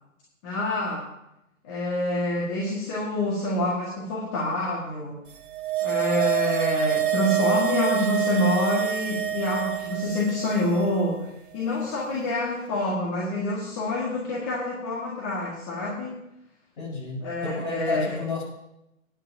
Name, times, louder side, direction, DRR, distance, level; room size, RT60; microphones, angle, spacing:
voice 1, 0.4-1.0 1.6-5.2 5.8-16.2 17.2-18.2, left 1 dB, 20° left, -5 dB, 1.8 m, -27 dB
sound 1, 5.4-10.8 11.1-11.2, right 12 dB, 40° right, 0.8 m, -27 dB
voice 2, 16.8-18.4, left 4 dB, 40° left, -4 dB, 5.1 m, -32 dB
21.0 x 10.0 x 2.8 m, 0.85 s
figure-of-eight pair, 140°, 41 cm